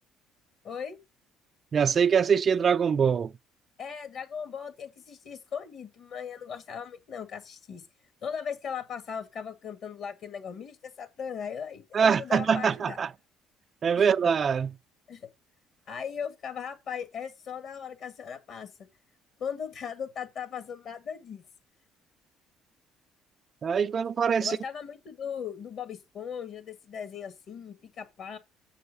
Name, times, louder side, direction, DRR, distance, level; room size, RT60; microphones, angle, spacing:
voice 1, 0.6-1.0 3.8-7.8 8.2-13.0 14.0-14.1 15.1-15.3 15.9-18.7 19.4-21.4 24.4-28.4, left 7 dB, 60° left, 1.9 m, -38 dB
voice 2, 1.7-3.3 11.9-13.1 13.8-14.8 23.6-24.6, right 6 dB, 45° right, 0.4 m, -23 dB
7.4 x 5.5 x 5.3 m
supercardioid pair, 75°, 0 cm